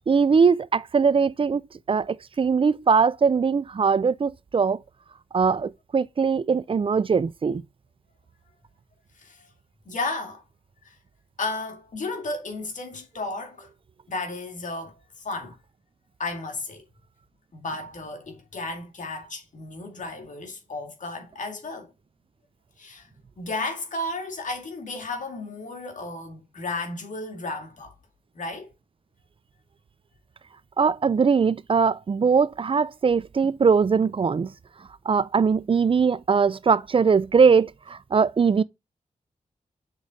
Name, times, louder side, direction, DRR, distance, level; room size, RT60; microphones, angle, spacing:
voice 1, 0.1-1.6 1.9-4.8 5.3-7.6 30.8-34.5 35.1-38.6, right 5 dB, 40° right, 0.4 m, -21 dB
voice 2, 9.9-10.4 10.9-11.0 11.4-13.7 14.1-15.6 16.2-16.8 17.5-21.9 22.8-23.1 23.4-27.9 28.3-28.7, left 2 dB, 65° left, 2.0 m, -33 dB
6.9 x 4.0 x 3.6 m
cardioid pair, 60°, 14 cm